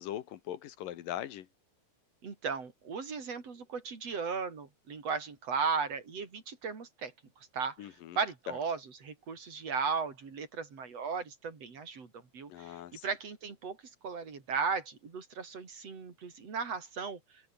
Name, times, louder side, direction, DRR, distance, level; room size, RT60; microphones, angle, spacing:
voice 1, 0.0-1.5 7.8-8.2 8.5-8.6 12.5-13.1, left 12 dB, 85° left, 3.1 m, -40 dB
voice 2, 2.2-7.1 7.5-7.9 8.2-12.1 12.3-13.8 14.0-17.2, right 5 dB, 50° right, 5.0 m, -36 dB
omnidirectional pair, 3.8 m